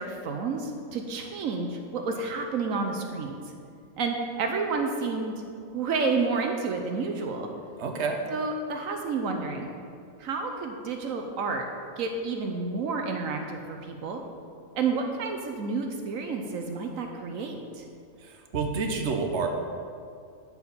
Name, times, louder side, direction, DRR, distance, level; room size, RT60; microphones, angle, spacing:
voice 1, 0.0-3.3 4.0-5.4 5.7-7.5 8.3-9.7 10.2-11.6 12.0-14.2 14.7-17.8, right 4 dB, 80° right, 4 dB, 1.2 m, -30 dB
voice 2, 7.8-8.2 18.2-19.5, right 4 dB, 60° right, 3 dB, 1.2 m, -29 dB
12.0 x 4.9 x 6.8 m, 2.4 s
omnidirectional pair, 1.4 m